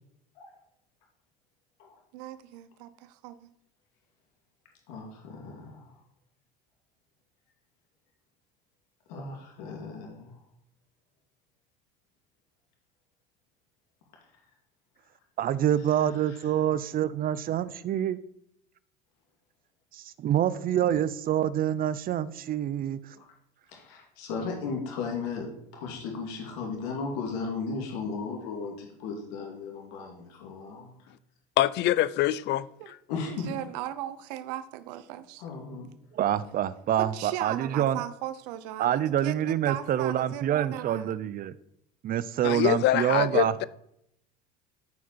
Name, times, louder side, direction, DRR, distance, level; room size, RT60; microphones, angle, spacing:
voice 1, 2.1-3.5 26.6-26.8 32.8-32.9 33.3-35.4 37.0-41.1, right 13 dB, 85° right, 0.7 m, -38 dB
voice 2, 4.9-5.8 9.1-10.3 16.2-16.4 23.7-25.5 25.7-31.1 33.1-33.5 35.4-35.9, left 4 dB, 80° left, 2.3 m, -36 dB
voice 3, 15.4-18.2 19.9-23.0 36.1-38.0 38.8-41.5 42.0-43.5, right 11 dB, 45° right, 0.6 m, -26 dB
voice 4, 31.6-33.0 42.4-43.6, left 14 dB, 60° left, 0.5 m, -25 dB
13.0 x 4.7 x 4.6 m
supercardioid pair, 90°, 21 cm